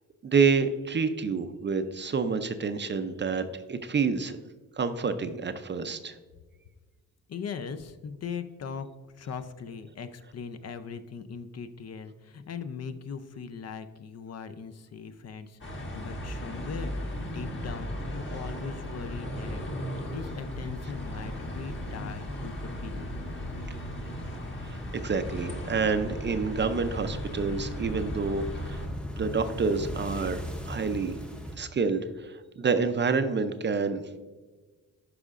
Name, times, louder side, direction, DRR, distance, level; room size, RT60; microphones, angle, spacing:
voice 1, 0.2-4.4 4.8-6.2 24.6-28.8 29.1-31.1 31.6-34.2, right 5 dB, 35° right, 9 dB, 0.5 m, -28 dB
voice 2, 7.3-8.9 9.1-23.1, left 6 dB, 50° left, 10 dB, 0.5 m, -40 dB
sound 1, 15.6-28.9, left 1 dB, 35° left, 1.4 m, -37 dB
sound 2, 19.9-31.6, equal, 5° left, 0.7 m, -40 dB
12.0 x 4.9 x 2.4 m, 1.3 s
wide cardioid pair, 130°, 32 cm